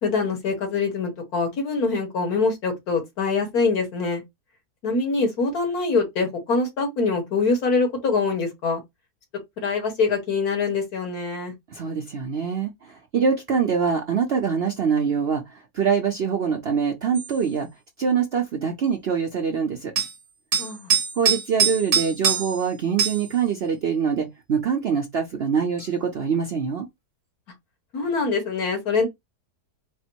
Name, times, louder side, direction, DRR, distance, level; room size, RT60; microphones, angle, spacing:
voice 1, 0.0-4.2 4.8-8.8 9.6-11.5 20.6-20.9 27.9-29.1, left 4 dB, 65° left, 1.7 m, -24 dB
voice 2, 11.7-17.7 18.0-19.9 21.2-26.9, right 6 dB, 55° right, 0.7 m, -24 dB
sound 1, 17.1-17.3 20.0-20.1 20.5-22.6 23.0-23.3 25.8-25.9, right 7 dB, 40° right, 1.1 m, -23 dB
4.3 x 2.0 x 4.4 m
omnidirectional pair, 1.7 m